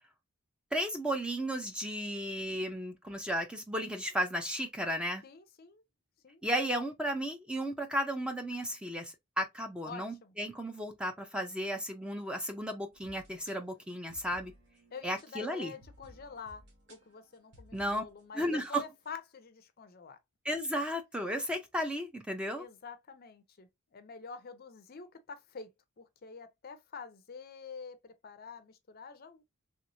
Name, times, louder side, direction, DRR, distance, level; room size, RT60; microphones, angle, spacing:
voice 1, 0.7-5.2 6.4-14.5 15.0-15.7 17.7-18.0 18.4-18.8 20.4-22.6, equal, 5° right, 0.5 m, -34 dB
voice 2, 5.2-5.8 6.2-6.4 9.8-10.3 14.9-16.6 16.9-20.2 22.6-25.7 26.0-29.4, left 5 dB, 45° left, 0.5 m, -47 dB
sound 1, 12.9-18.7, equal, 55° right, 1.1 m, -59 dB
3.4 x 3.0 x 2.6 m
head